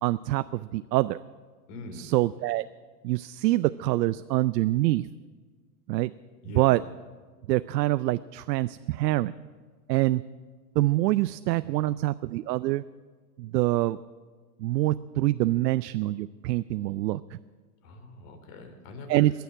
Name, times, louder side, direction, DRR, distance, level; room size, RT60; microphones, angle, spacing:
voice 1, 0.0-1.2 1.9-2.6 3.0-5.1 5.9-6.1 6.5-6.8 7.5-9.3 9.9-10.2 10.8-12.8 13.4-14.0 14.6-17.4 19.1-19.3, right 17 dB, 75° right, 14 dB, 0.6 m, -25 dB
voice 2, 1.7-2.1 6.4-6.7 11.6-12.0 17.8-19.3, left 2 dB, 55° left, 5 dB, 3.3 m, -43 dB
21.0 x 7.0 x 9.6 m, 1.5 s
hypercardioid pair, 130°, 49 cm